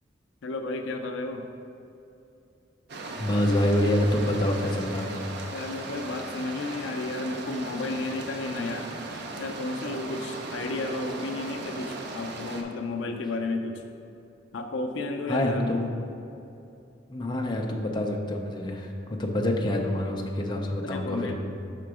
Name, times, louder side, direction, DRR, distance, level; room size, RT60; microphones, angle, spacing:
voice 1, 0.4-1.4 5.5-8.9 9.4-13.8 14.5-15.9 20.8-21.3, left 2 dB, 75° left, 5 dB, 0.4 m, -32 dB
sound 1, 2.9-12.6, right 2 dB, 60° right, 0.6 m, -37 dB
voice 2, 3.2-5.1 15.3-15.9 17.1-21.3, left 1 dB, 25° left, 1 dB, 0.5 m, -26 dB
6.0 x 3.8 x 4.8 m, 2.8 s
head